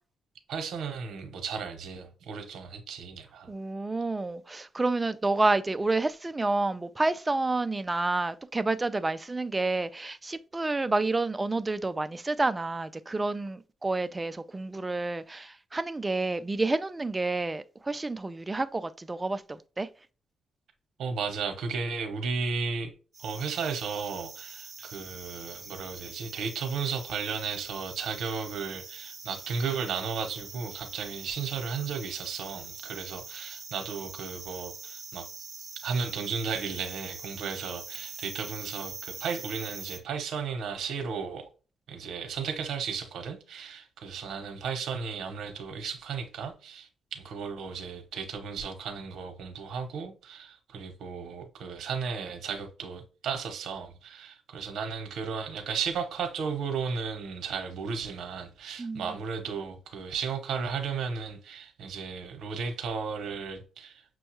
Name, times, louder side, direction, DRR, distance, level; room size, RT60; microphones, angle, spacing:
voice 1, 0.5-3.5 21.0-22.9 23.2-35.3 35.8-41.5 41.9-64.0, right 5 dB, 80° right, 0.8 m, -34 dB
voice 2, 3.5-19.9 58.8-59.2, right 2 dB, 20° right, 0.3 m, -29 dB
sound 1, 23.1-40.0, right 5 dB, 40° right, 0.8 m, -44 dB
6.2 x 2.3 x 2.9 m
cardioid pair, 105°, 0 cm